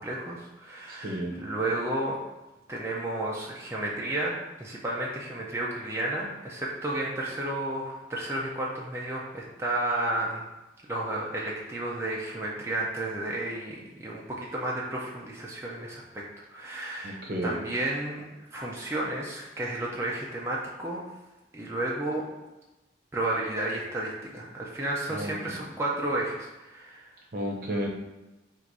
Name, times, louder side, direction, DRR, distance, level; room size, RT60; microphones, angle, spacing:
voice 1, 0.0-2.2 2.7-4.3 4.6-10.4 10.9-16.2 16.5-18.2 18.5-21.0 21.5-22.3 23.1-27.1, right 1 dB, 15° right, -4 dB, 0.5 m, -32 dB
voice 2, 1.0-1.4 17.0-17.6 25.1-25.3 27.3-27.9, right 1 dB, 55° right, 0 dB, 0.8 m, -32 dB
4.0 x 2.5 x 4.6 m, 1.1 s
head